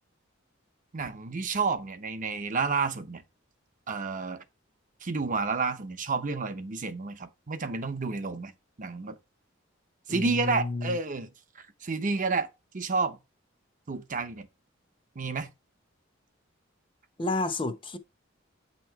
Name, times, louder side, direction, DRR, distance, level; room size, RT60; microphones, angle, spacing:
voice 1, 0.9-3.2 3.9-4.4 5.0-8.5 8.8-9.2 10.1-11.3 11.6-13.2 13.9-14.5 15.2-15.5, right 4 dB, 40° right, 0.7 m, -30 dB
voice 2, 10.1-11.0 17.2-18.0, left 2 dB, 25° left, 0.7 m, -31 dB
8.6 x 3.0 x 4.5 m
head